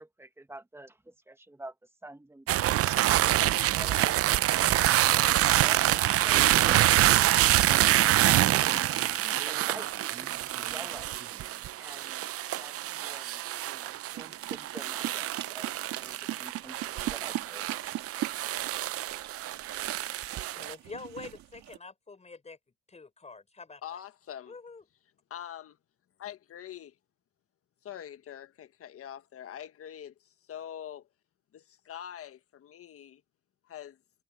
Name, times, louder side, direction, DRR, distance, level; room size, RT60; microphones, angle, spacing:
voice 1, 0.0-1.7 2.0-3.2 3.7-6.9 8.5-11.2 11.8-12.3 12.6-17.9, right 2 dB, 10° right, 1.5 m, -48 dB
sound 1, 2.5-20.7, right 14 dB, 55° right, 0.6 m, -26 dB
sound 2, 3.8-12.0, right 5 dB, 30° right, 1.8 m, -50 dB
sound 3, 14.2-21.8, right 13 dB, 70° right, 2.2 m, -40 dB
voice 2, 20.5-22.6 22.9-24.0 24.5-24.8, left 4 dB, 25° left, 4.6 m, -46 dB
voice 3, 23.8-24.6 25.3-25.8 26.2-26.9 27.8-31.1 31.5-33.2 33.6-34.0, left 10 dB, 50° left, 1.5 m, -44 dB
cardioid pair, 95°, 29 cm